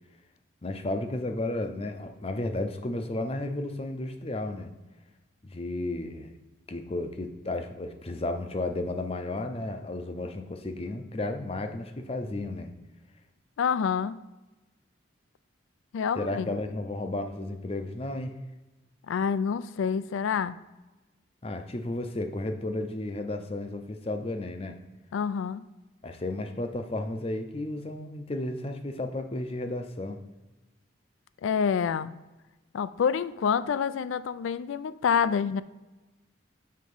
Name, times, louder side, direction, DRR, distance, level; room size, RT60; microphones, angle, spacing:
voice 1, 0.6-4.7 5.4-6.3 6.7-12.7 16.2-18.4 21.4-24.8 26.0-30.2, left 2 dB, 30° left, 0.6 m, -33 dB
voice 2, 13.6-14.2 15.9-16.5 19.1-20.5 25.1-25.7 31.4-32.1 32.7-35.6, left 7 dB, 80° left, 0.3 m, -27 dB
6.6 x 3.5 x 5.4 m
head